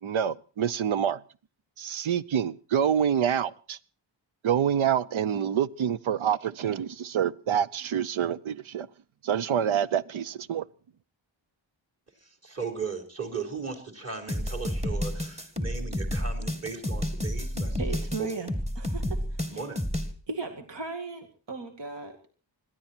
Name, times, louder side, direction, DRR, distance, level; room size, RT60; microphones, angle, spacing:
voice 1, 0.0-1.2 1.8-3.8 4.4-8.9 9.2-10.6, right 9 dB, 90° right, 0.8 m, -27 dB
voice 2, 12.2-17.8 18.2-18.4 19.5-19.8, right 5 dB, 35° right, 4.2 m, -37 dB
sound 1, 14.3-20.1, equal, 15° right, 2.0 m, -30 dB
voice 3, 17.8-19.6 20.3-22.3, right 3 dB, 65° right, 2.5 m, -37 dB
21.5 x 15.0 x 4.4 m
wide cardioid pair, 100°, 46 cm